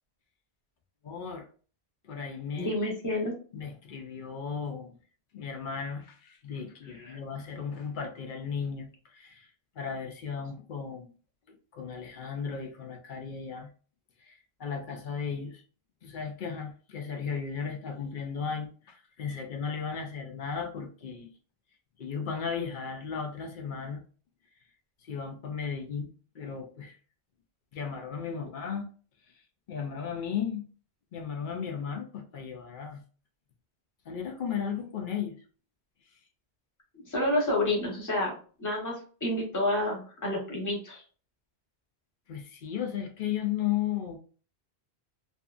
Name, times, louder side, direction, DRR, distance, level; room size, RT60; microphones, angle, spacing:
voice 1, 1.0-1.4 2.1-2.7 3.5-5.0 5.3-9.5 9.8-11.1 11.5-13.7 14.2-15.6 16.0-21.3 22.0-24.0 25.0-26.1 26.3-27.0 27.7-28.8 29.7-30.7 31.1-33.0 34.1-35.4 42.3-44.2, left 7 dB, 60° left, 0.6 m, -35 dB
voice 2, 2.6-3.3 7.0-7.2 36.9-38.3 38.6-41.0, left 1 dB, 20° left, 0.8 m, -29 dB
2.7 x 2.5 x 2.3 m
omnidirectional pair, 1.1 m